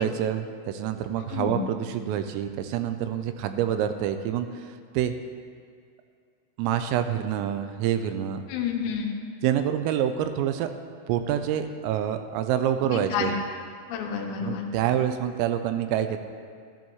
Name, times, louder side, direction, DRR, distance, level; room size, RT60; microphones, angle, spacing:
voice 1, 0.0-5.1 6.6-8.4 9.4-10.7 11.1-13.4 14.4-16.2, right 10 dB, 85° right, 8 dB, 3.2 m, -27 dB
voice 2, 1.3-1.6 8.5-9.2 12.9-13.4 13.9-14.7, left 7 dB, 85° left, 1 dB, 3.9 m, -29 dB
13.5 x 13.0 x 3.1 m, 2.1 s
omnidirectional pair, 6.0 m